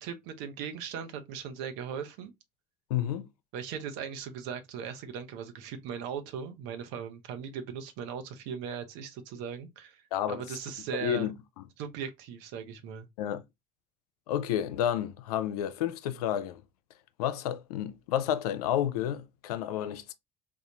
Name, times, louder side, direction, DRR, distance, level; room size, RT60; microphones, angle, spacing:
voice 1, 0.0-2.3 3.5-10.0 10.3-11.3 11.8-13.1, right 7 dB, 70° right, 0.8 m, -38 dB
voice 2, 2.9-3.3 10.1-10.4 11.0-11.3 13.2-13.4 14.3-16.6 17.2-20.1, left 10 dB, 80° left, 0.5 m, -30 dB
3.6 x 2.4 x 2.8 m
hypercardioid pair, 65°, 19 cm